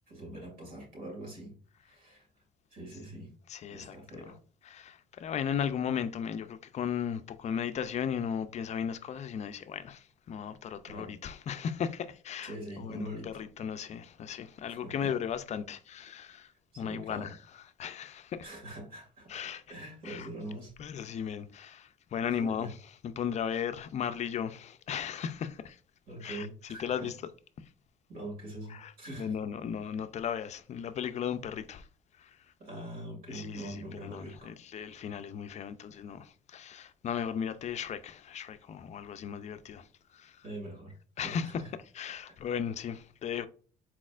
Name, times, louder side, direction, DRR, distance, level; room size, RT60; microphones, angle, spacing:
voice 1, 0.1-2.3 2.7-3.3 3.7-4.4 10.9-11.1 12.4-13.3 14.7-15.1 16.7-17.3 18.4-19.4 19.7-20.7 22.3-22.7 23.5-23.6 26.1-27.1 28.1-29.3 32.6-34.5 40.4-40.9 41.2-41.7, right 1 dB, 55° right, 2.2 m, -43 dB
voice 2, 3.5-4.2 4.7-17.4 17.8-18.5 19.3-19.6 20.0-20.3 20.8-22.7 23.0-25.8 26.2-27.2 27.6-27.7 28.7-31.9 32.2-32.5 33.3-40.4 41.2-43.5, left 8 dB, 40° left, 0.4 m, -36 dB
4.2 x 4.1 x 2.4 m
cardioid pair, 110°, 17 cm